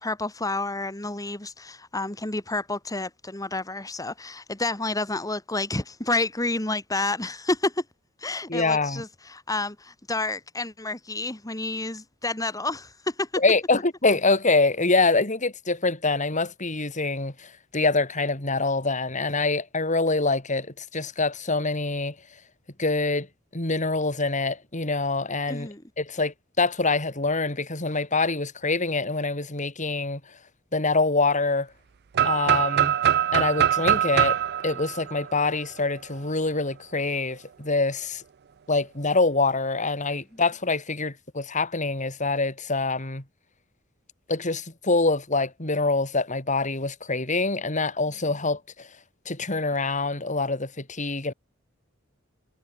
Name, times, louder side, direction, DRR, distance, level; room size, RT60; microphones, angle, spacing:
voice 1, 0.0-7.8 8.2-13.3 25.5-25.8 40.3-40.4, left 2 dB, 20° left, 2.3 m, -30 dB
voice 2, 8.5-9.0 13.4-22.2 22.8-23.3 23.5-25.7 26.0-30.2 30.7-31.7 32.2-33.0 33.3-34.4 34.6-38.2 38.7-43.2 44.3-48.9 49.3-51.3, left 3 dB, 40° left, 3.9 m, -25 dB
sound 1, 32.1-36.0, right 10 dB, 55° right, 0.4 m, -23 dB
head